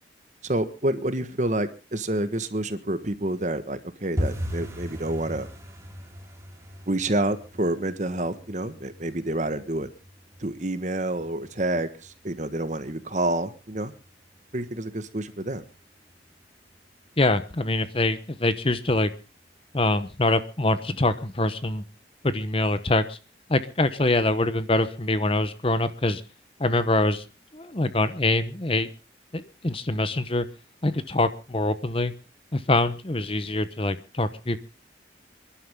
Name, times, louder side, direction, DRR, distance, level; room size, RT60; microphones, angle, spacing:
voice 1, 0.4-5.5 6.9-9.9 10.4-13.9 14.5-15.6, right 1 dB, 40° right, 11 dB, 1.4 m, -28 dB
sound 1, 4.2-14.9 15.1-15.8 16.1-16.4 16.7-17.0 17.3-17.4 17.9-18.5 18.8-18.9 19.4-19.5, equal, 15° right, 2.7 m, -38 dB
voice 2, 17.2-19.1 19.7-21.8 22.2-23.2 23.5-26.2 26.6-27.2 27.5-28.9 29.3-30.4 30.8-32.1 32.5-34.6, left 2 dB, 30° left, 12 dB, 0.9 m, -24 dB
27.0 x 11.5 x 3.6 m, 0.32 s
head